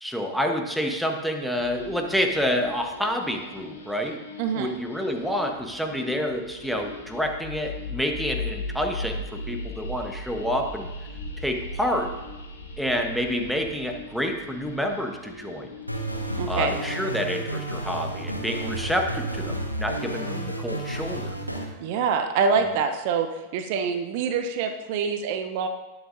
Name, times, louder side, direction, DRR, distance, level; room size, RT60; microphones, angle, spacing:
voice 1, 0.0-4.2 4.5-10.9 11.4-12.1 12.8-15.7 16.5-21.3 22.5-22.8, equal, ahead, 4 dB, 1.1 m, -28 dB
sound 1, 1.5-17.5, left 2 dB, 70° left, 1.7 m, -39 dB
voice 2, 4.4-4.7 16.4-16.7 21.8-23.3 23.5-25.7, right 6 dB, 50° right, 7 dB, 0.7 m, -25 dB
sound 2, 15.8-21.7, right 1 dB, 90° left, 1.1 m, -31 dB
19.0 x 7.2 x 2.6 m, 1.1 s
figure-of-eight pair, 90°, 0 cm